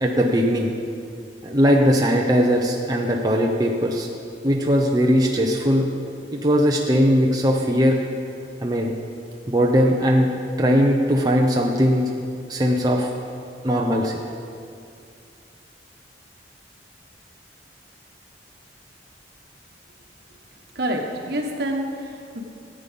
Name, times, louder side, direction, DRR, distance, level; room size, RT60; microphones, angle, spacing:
voice 1, 0.0-0.7 1.4-4.1 4.4-5.9 6.4-8.0 8.6-8.9 9.5-10.3 10.6-12.0 12.5-13.1 13.6-14.2, equal, 20° right, -1 dB, 0.7 m, -19 dB
voice 2, 20.7-22.4, right 1 dB, 60° right, 1 dB, 1.5 m, -27 dB
14.0 x 8.4 x 5.3 m, 2.4 s
head